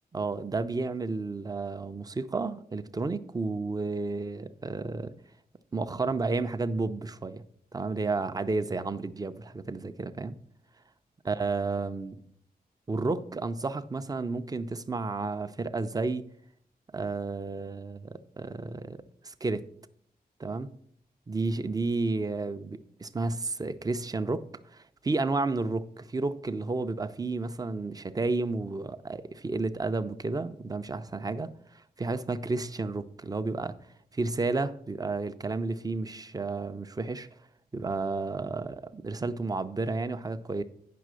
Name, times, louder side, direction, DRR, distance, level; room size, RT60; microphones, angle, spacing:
voice 1, 0.1-5.1 5.7-7.4 7.7-10.4 11.3-12.2 12.9-16.3 16.9-19.6 20.4-20.7 21.3-33.8 34.1-37.3 37.7-40.6, right 3 dB, 25° right, 0.5 m, -32 dB
9.2 x 5.9 x 6.3 m
wide cardioid pair, 145°, 16 cm